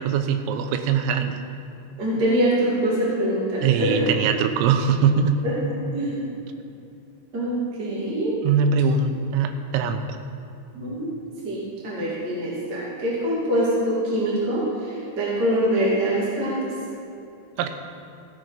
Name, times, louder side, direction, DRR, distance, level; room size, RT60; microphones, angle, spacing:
voice 1, 0.0-1.4 3.6-5.4 8.4-10.0 17.6-17.7, right 6 dB, 85° right, 7 dB, 3.3 m, -22 dB
voice 2, 2.0-4.1 5.4-6.3 7.3-8.4 10.7-11.1 11.4-16.7, right 1 dB, 30° right, -7 dB, 1.9 m, -24 dB
16.0 x 7.9 x 4.9 m, 2.6 s
omnidirectional pair, 6.0 m